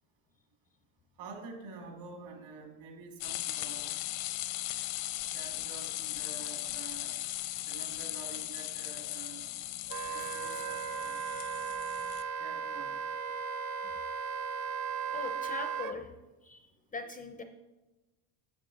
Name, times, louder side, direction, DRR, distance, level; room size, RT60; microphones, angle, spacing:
voice 1, 1.2-4.0 5.3-7.1 7.6-9.5 10.0-11.2 12.4-13.0, right 4 dB, 65° right, 2 dB, 2.4 m, -48 dB
sound 1, 3.2-12.2, left 15 dB, 80° left, 0.8 m, -38 dB
Wind instrument woodwind instrument, 9.9-15.9, right 6 dB, 50° right, 0.6 m, -36 dB
voice 2, 15.1-16.1 16.4-17.4, left 3 dB, 20° left, 6 dB, 0.4 m, -41 dB
8.8 x 7.6 x 3.9 m, 1.1 s
supercardioid pair, 110°, 49 cm